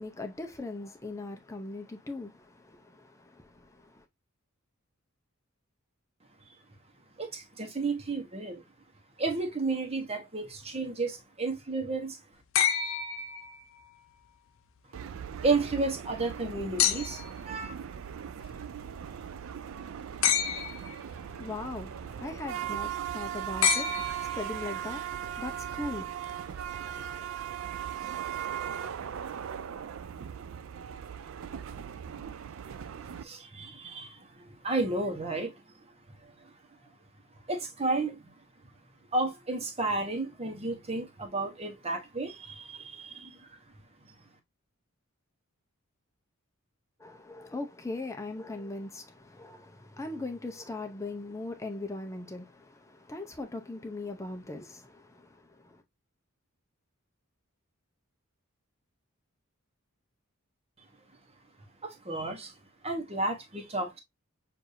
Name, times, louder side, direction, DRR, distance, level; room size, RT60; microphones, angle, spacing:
voice 1, 0.0-4.0 21.0-27.3 47.0-55.8, left 2 dB, 15° left, 0.6 m, -40 dB
voice 2, 7.2-8.6 9.2-12.2 15.4-17.7 32.9-35.6 36.1-36.5 37.5-38.3 39.1-43.6 44.0-44.1 61.8-62.5 62.8-64.0, right 3 dB, 30° right, 1.0 m, -32 dB
sound 1, 12.6-13.9 16.8-17.4 20.2-21.0 23.6-24.7 26.2-26.3, left 8 dB, 60° left, 0.6 m, -28 dB
sound 2, 14.9-33.2, right 9 dB, 65° right, 0.3 m, -38 dB
6.5 x 2.6 x 2.6 m
head